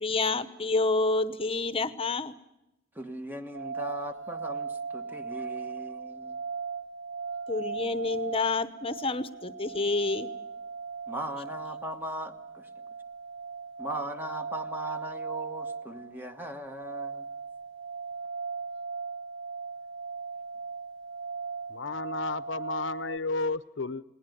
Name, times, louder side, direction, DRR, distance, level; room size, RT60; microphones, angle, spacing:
voice 1, 0.0-2.3 7.5-10.3, left 3 dB, 30° left, 0.9 m, -28 dB
voice 2, 2.9-6.4 11.1-12.7 13.8-17.3, right 1 dB, 10° right, 1.2 m, -39 dB
sound 1, 3.5-23.2, right 5 dB, 75° right, 0.8 m, -38 dB
voice 3, 21.7-24.0, left 3 dB, 80° left, 0.7 m, -32 dB
20.0 x 18.5 x 9.2 m
head